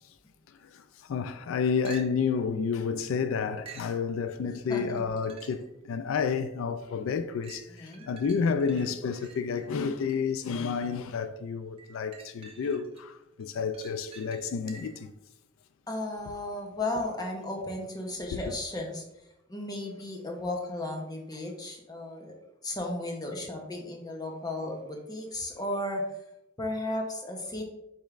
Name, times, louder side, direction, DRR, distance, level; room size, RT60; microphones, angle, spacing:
voice 1, 0.6-15.1 18.3-18.4, left 6 dB, 85° left, 0.3 m, -30 dB
sound 1, 1.8-2.4 3.6-4.0 5.0-5.7 6.3-6.4 7.4-10.4 11.8-13.0 13.4-15.1 18.9-19.0, right 5 dB, 30° right, 0.7 m, -50 dB
voice 2, 4.7-5.1 7.7-8.1 15.9-19.0 19.5-22.3 22.6-26.0 26.6-27.6, left 1 dB, 20° left, 0.7 m, -34 dB
5.1 x 4.4 x 2.4 m
head